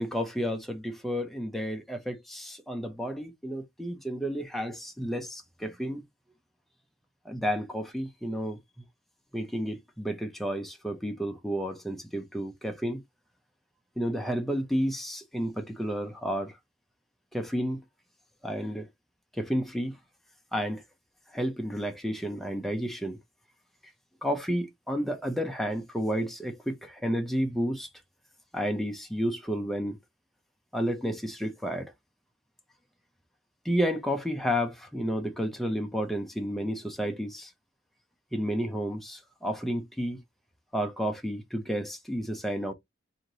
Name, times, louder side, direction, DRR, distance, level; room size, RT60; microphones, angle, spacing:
voice 1, 0.0-6.0 7.3-8.6 9.3-13.0 14.0-16.5 17.3-17.8 18.4-18.9 19.4-20.0 20.5-20.8 21.3-23.2 24.2-27.9 28.5-30.0 30.7-31.9 33.6-37.5 38.3-40.2 40.7-42.7, equal, ahead, 0.6 m, -31 dB
3.2 x 2.7 x 3.9 m
head